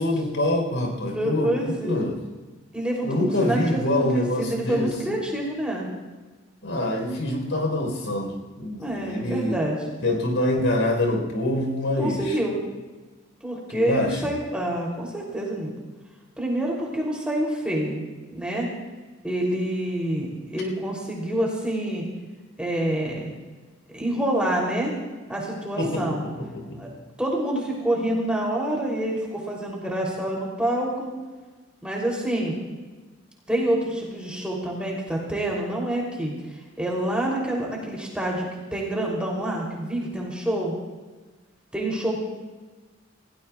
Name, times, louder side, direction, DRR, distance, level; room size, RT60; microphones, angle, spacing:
voice 1, 0.0-2.2 3.0-5.2 6.6-9.6 10.0-12.4 13.7-14.3 25.8-26.9, left 1 dB, 70° left, 2 dB, 4.0 m, -25 dB
voice 2, 1.0-2.1 2.7-5.9 8.8-10.0 12.0-12.6 13.4-15.7 16.4-18.0 18.3-18.7 19.2-22.1 22.6-23.3 23.9-24.9 25.3-26.2 26.8-26.9 27.2-31.1 31.8-32.5 33.5-36.3 36.8-40.8 41.7-42.2, right 1 dB, 5° right, -3 dB, 3.1 m, -27 dB
28.5 x 17.0 x 2.4 m, 1.3 s
head